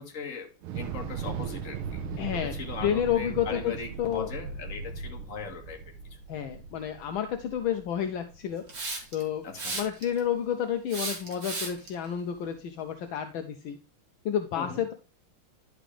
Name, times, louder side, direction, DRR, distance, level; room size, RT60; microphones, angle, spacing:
voice 1, 0.0-2.0 2.4-5.8 9.4-9.8 14.6-14.8, left 5 dB, 40° left, 3 dB, 1.7 m, -39 dB
Thunder / Explosion, 0.6-8.8, right 6 dB, 75° right, 1.5 m, -38 dB
voice 2, 2.2-2.5 2.8-3.7 4.0-4.3 6.3-8.7 9.1-9.4 9.7-13.8 14.2-14.9, left 9 dB, 75° left, 7 dB, 1.4 m, -30 dB
Hiss, 8.7-9.2 9.6-10.2 10.9-11.9, right 3 dB, 50° right, 2.5 m, -34 dB
11.0 x 5.0 x 3.2 m, 0.31 s
omnidirectional pair, 2.4 m